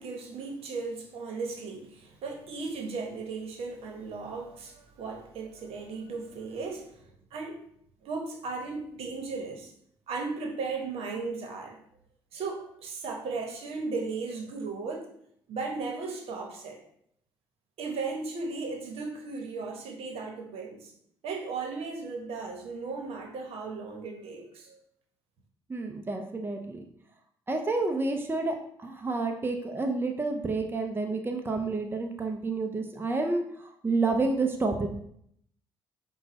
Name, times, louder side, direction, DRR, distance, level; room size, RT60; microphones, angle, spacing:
voice 1, 0.0-7.0 7.3-7.6 8.0-9.7 10.1-11.8 12.3-15.1 15.5-16.8 17.8-20.9 21.2-24.8, right 4 dB, 70° right, 3 dB, 1.0 m, -36 dB
voice 2, 25.7-26.8 27.5-28.5 28.8-33.4 33.8-34.9, right 3 dB, 20° right, 3 dB, 0.7 m, -29 dB
5.3 x 2.3 x 4.0 m, 0.68 s
supercardioid pair, 60°, 10 cm